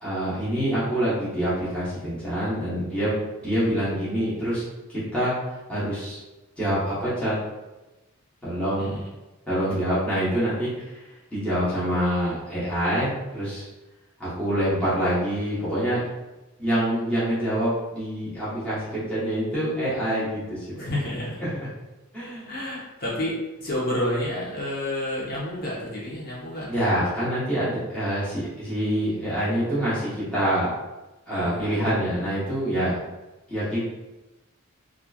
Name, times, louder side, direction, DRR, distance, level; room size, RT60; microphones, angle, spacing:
voice 1, 0.0-3.1 3.4-4.6 4.9-5.3 5.7-6.2 6.6-7.3 8.4-9.0 9.5-11.0 11.3-13.7 14.2-16.0 16.6-20.8 21.4-21.5 22.1-22.5 26.7-30.7 31.3-32.9 33.5-33.9, equal, 5° left, -12 dB, 0.9 m, -26 dB
voice 2, 8.8-9.1 20.8-21.5 22.4-26.8 31.3-31.7, left 1 dB, 40° left, -6 dB, 0.7 m, -30 dB
2.9 x 2.4 x 2.3 m, 1.1 s
head